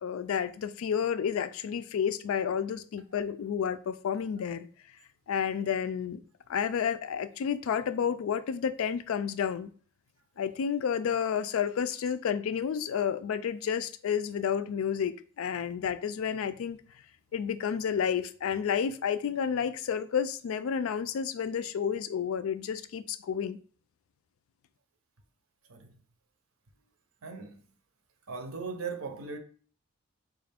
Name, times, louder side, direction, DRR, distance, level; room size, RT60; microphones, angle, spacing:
voice 1, 0.0-4.7 5.3-6.2 6.5-9.7 10.4-16.8 17.3-23.6, left 7 dB, 75° left, 0.3 m, -30 dB
voice 2, 27.2-27.6 28.3-29.4, right 4 dB, 80° right, 0.7 m, -38 dB
4.1 x 2.4 x 3.4 m
head